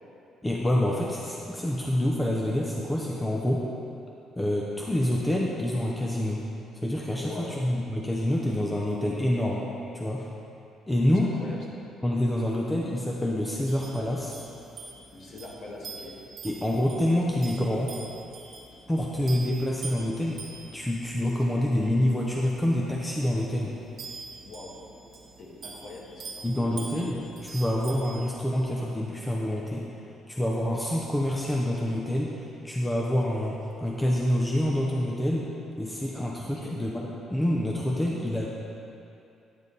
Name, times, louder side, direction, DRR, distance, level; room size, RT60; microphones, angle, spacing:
voice 1, 0.4-3.7 4.4-6.4 6.8-9.7 9.9-10.3 10.9-11.3 12.0-14.4 16.4-17.9 18.9-20.4 20.7-23.7 26.4-29.8 30.3-35.5 35.8-38.5, left 1 dB, 10° left, -3 dB, 0.7 m, -27 dB
voice 2, 7.2-7.6 11.4-11.6 15.1-16.2 24.4-24.8 25.4-26.8 36.4-36.8, left 2 dB, 50° left, -4 dB, 1.8 m, -42 dB
sound 1, 13.6-28.4, right 4 dB, 50° right, 1.4 m, -45 dB
9.8 x 7.2 x 4.1 m, 2.7 s
cardioid pair, 130°, 0 cm